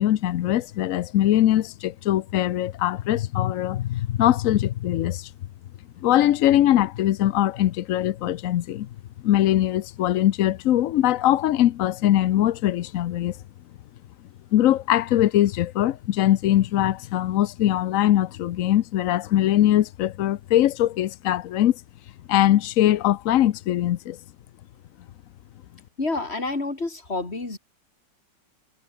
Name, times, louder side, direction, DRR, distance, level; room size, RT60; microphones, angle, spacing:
voice 1, 0.0-5.3 6.0-8.9 9.2-13.4 14.5-21.8 22.3-24.2, left 13 dB, 70° left, 0.8 m, -21 dB
voice 2, 26.0-27.6, left 3 dB, 35° left, 3.6 m, -28 dB
omnidirectional pair, 2.0 m